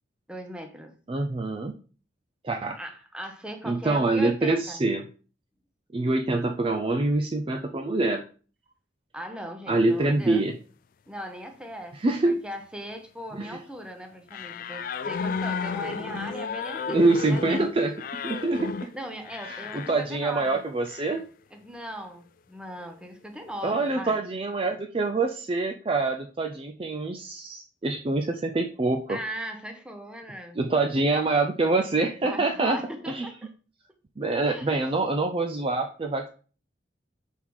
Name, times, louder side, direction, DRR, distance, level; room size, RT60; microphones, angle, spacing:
voice 1, 0.3-0.9 2.8-4.8 9.1-10.5 11.1-12.0 12.2-17.6 18.9-20.6 21.5-24.2 29.1-30.6 32.2-33.3 34.4-34.9, equal, 5° right, 4 dB, 0.8 m, -38 dB
voice 2, 1.1-1.7 2.4-2.8 3.6-5.1 5.9-8.2 9.7-10.6 11.9-12.4 13.3-13.6 16.9-18.9 19.4-21.2 23.6-29.2 30.6-32.8 33.1-33.3 34.2-36.3, right 2 dB, 30° right, 4 dB, 0.4 m, -25 dB
sound 1, 14.3-20.0 20.9-21.2, left 5 dB, 45° left, 0.3 m, -33 dB
5.6 x 3.6 x 4.7 m, 0.39 s
head